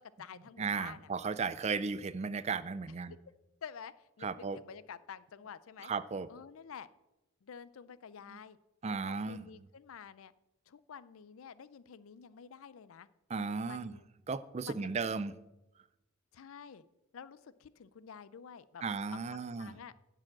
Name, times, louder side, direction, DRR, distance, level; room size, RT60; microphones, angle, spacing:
voice 1, 0.0-1.1 3.1-3.2 3.6-5.9 6.3-6.9 7.4-8.6 8.9-10.3 10.7-13.1 13.6-14.0 14.6-15.1 16.3-16.8 17.1-18.8 19.1-19.9, left 7 dB, 75° left, 17 dB, 0.4 m, -50 dB
voice 2, 0.6-3.1 4.2-4.6 5.8-6.3 8.3-8.4 8.8-9.4 13.3-13.9 14.3-15.3 18.8-19.8, right 5 dB, 30° right, 15 dB, 0.4 m, -35 dB
10.5 x 4.9 x 7.6 m, 0.98 s
head